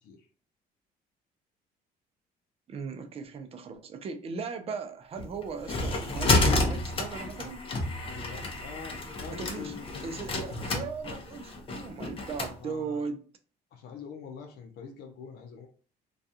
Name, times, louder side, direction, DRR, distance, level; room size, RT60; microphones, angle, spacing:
voice 1, 2.7-7.6 9.3-9.7 10.0-13.2, right 5 dB, 35° right, 0.5 m, -38 dB
sound 1, 5.2-12.5, left 2 dB, 35° left, 0.6 m, -30 dB
voice 2, 8.0-10.5 12.6-13.1 13.7-15.7, left 6 dB, 70° left, 0.6 m, -44 dB
2.3 x 2.3 x 2.6 m
cardioid pair, 110°, 17 cm